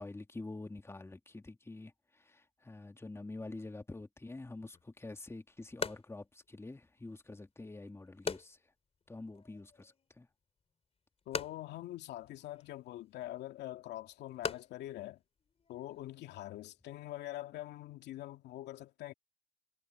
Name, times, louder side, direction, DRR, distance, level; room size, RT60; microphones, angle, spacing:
voice 1, 0.0-8.6 9.1-10.3, left 2 dB, 15° left, 2.3 m, -47 dB
sound 1, 4.7-16.1, left 5 dB, 35° left, 3.2 m, -45 dB
voice 2, 11.3-15.2 15.7-19.1, left 14 dB, 70° left, 2.5 m, -44 dB
supercardioid pair, 70°, 18 cm